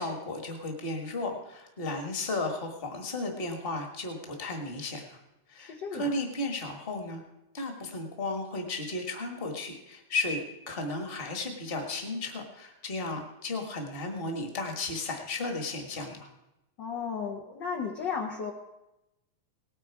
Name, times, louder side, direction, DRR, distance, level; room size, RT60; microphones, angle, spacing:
voice 1, 0.0-5.2 5.5-7.2 7.5-16.3, left 2 dB, 30° left, 4 dB, 1.1 m, -34 dB
voice 2, 5.6-6.1 16.8-18.5, left 6 dB, 75° left, 0 dB, 1.0 m, -34 dB
18.5 x 9.0 x 4.7 m, 0.91 s
omnidirectional pair, 3.5 m